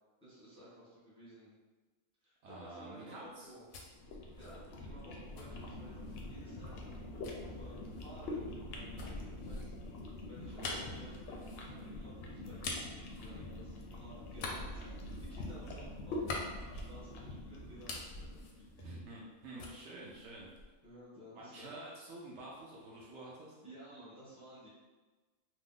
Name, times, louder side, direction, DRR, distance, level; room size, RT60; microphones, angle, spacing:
voice 1, 0.2-1.5 2.2-3.6 4.4-18.7 19.5-19.8 20.8-21.8 23.6-24.7, right 1 dB, 5° left, -9 dB, 0.7 m, -55 dB
voice 2, 2.4-3.5 10.5-10.8 18.8-20.5 21.4-23.5, right 2 dB, 65° right, -4 dB, 0.8 m, -48 dB
sound 1, 3.3-6.3 7.2-13.9 14.3-17.3 17.6-19.3 19.6-20.9, left 3 dB, 90° left, 1.0 m, -46 dB
sound 2, 3.7-19.0, left 2 dB, 65° left, 0.6 m, -45 dB
2.8 x 2.0 x 3.6 m, 1.3 s
omnidirectional pair, 1.4 m